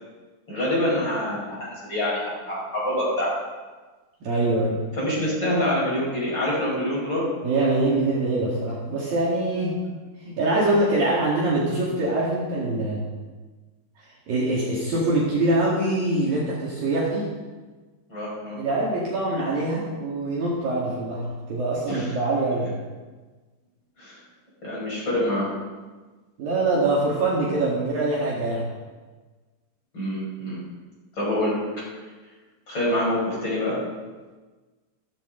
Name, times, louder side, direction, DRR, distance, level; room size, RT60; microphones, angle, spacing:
voice 1, 0.5-3.3 5.0-7.3 18.1-18.6 21.9-22.1 24.0-24.2 24.6-25.5 29.9-30.6 31.2-31.6 32.7-33.8, left 1 dB, 20° left, -6 dB, 6.3 m, -26 dB
voice 2, 4.2-4.8 7.4-9.8 10.2-13.0 14.0-17.3 18.6-22.7 26.4-28.7, right 2 dB, 55° right, -6 dB, 3.6 m, -24 dB
16.0 x 14.5 x 4.0 m, 1.3 s
omnidirectional pair, 5.5 m